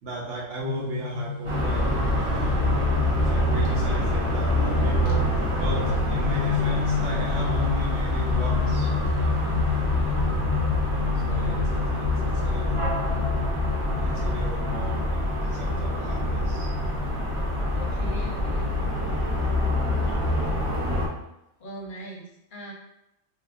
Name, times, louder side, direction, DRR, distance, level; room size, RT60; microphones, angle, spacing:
voice 1, 0.0-2.5 3.2-9.2 11.1-12.9 13.9-16.7 20.1-20.2, right 1 dB, 75° right, -3 dB, 1.1 m, -36 dB
sound 1, 0.6-19.8, left 7 dB, 10° right, 1.1 m, -33 dB
sound 2, 1.4-21.1, left 1 dB, 35° right, 0.5 m, -25 dB
voice 2, 17.7-18.8 21.6-22.7, right 1 dB, 50° left, 0 dB, 0.7 m, -40 dB
2.7 x 2.4 x 3.5 m, 0.85 s
omnidirectional pair, 1.3 m